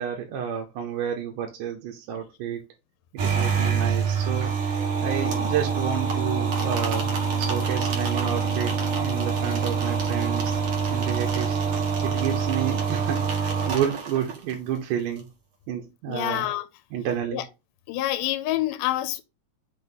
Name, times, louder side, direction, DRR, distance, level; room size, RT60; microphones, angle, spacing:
voice 1, 0.0-2.6 3.1-4.5 5.0-7.1 7.4-10.6 10.9-11.6 12.0-15.3 15.7-16.5 16.9-17.5, right 9 dB, 80° right, 2.3 m, -30 dB
sound 1, 3.2-14.5, right 6 dB, 50° right, 1.9 m, -25 dB
voice 2, 16.1-16.7 17.3-17.5 17.9-19.2, left 15 dB, 90° left, 2.1 m, -27 dB
6.1 x 2.9 x 5.3 m
omnidirectional pair, 3.7 m